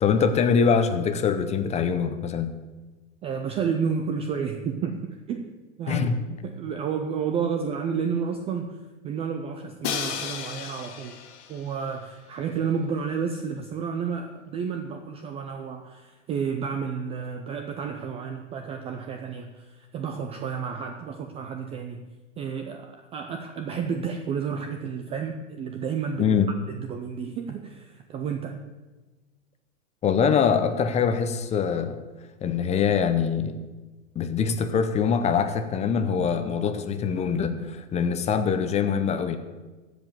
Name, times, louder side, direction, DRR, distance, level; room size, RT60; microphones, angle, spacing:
voice 1, 0.0-2.5 5.9-6.2 26.2-26.5 30.0-32.0 32.4-33.5 34.1-39.4, left 6 dB, 15° left, 9 dB, 0.7 m, -23 dB
voice 2, 3.2-6.1 6.4-8.8 9.0-11.2 11.5-22.1 22.4-26.3 26.7-28.6, right 6 dB, 15° right, 6 dB, 0.4 m, -31 dB
Crash cymbal, 9.8-11.8, left 8 dB, 60° left, 1.7 m, -33 dB
14.0 x 5.2 x 7.7 m, 1.2 s
hypercardioid pair, 130°, 39 cm